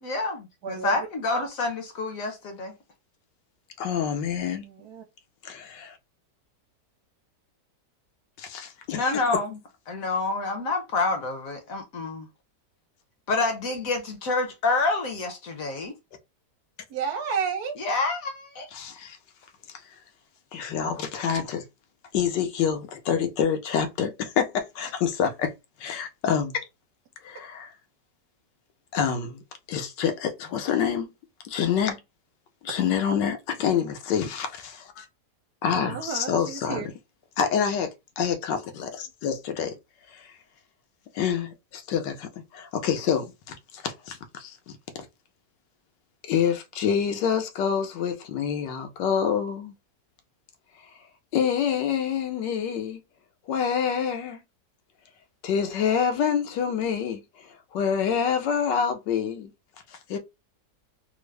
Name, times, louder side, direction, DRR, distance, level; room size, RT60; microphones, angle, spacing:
voice 1, 0.0-2.7 8.9-9.6 9.9-12.3 13.3-15.9 17.8-18.7, left 3 dB, 60° left, 1.0 m, -28 dB
voice 2, 0.6-0.9 1.3-1.4 4.6-5.0 16.9-17.7 35.7-36.9, right 6 dB, 65° right, 1.2 m, -31 dB
voice 3, 3.8-4.7 5.4-6.0 8.4-9.0 18.7-19.2 20.5-21.6 22.1-25.5 25.8-26.6 27.2-27.7 28.9-29.4 29.7-31.1 31.4-32.0 32.6-35.1 35.6-36.9 37.4-37.9 38.2-39.7 41.1-44.6 46.3-49.7 51.3-53.0 53.5-54.4 55.4-59.5 59.9-60.2, left 7 dB, 80° left, 1.3 m, -27 dB
3.6 x 2.0 x 3.2 m
omnidirectional pair, 1.9 m